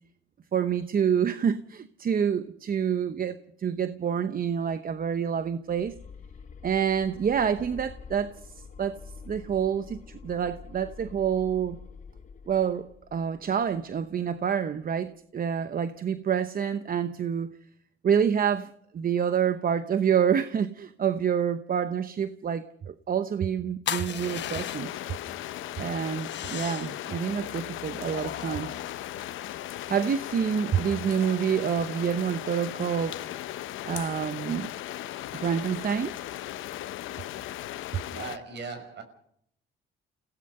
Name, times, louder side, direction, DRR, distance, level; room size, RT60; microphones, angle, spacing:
voice 1, 0.5-5.9 6.6-8.5 8.8-9.0 9.3-11.8 12.5-17.5 18.0-24.9 25.8-28.8 29.9-33.3 33.8-34.7 35.3-36.2, right 8 dB, 45° right, 0.9 m, -27 dB
sound 1, 5.7-14.6, left 5 dB, 40° left, 1.0 m, -47 dB
sound 2, 23.9-25.1 26.2-27.1 28.0-29.7, left 10 dB, 65° left, 1.1 m, -37 dB
sound 3, 24.2-38.4, left 13 dB, 80° left, 0.8 m, -37 dB
voice 2, 38.1-39.0, right 5 dB, 60° right, 5.7 m, -38 dB
29.0 x 17.0 x 5.5 m
cardioid pair, 90°, 20 cm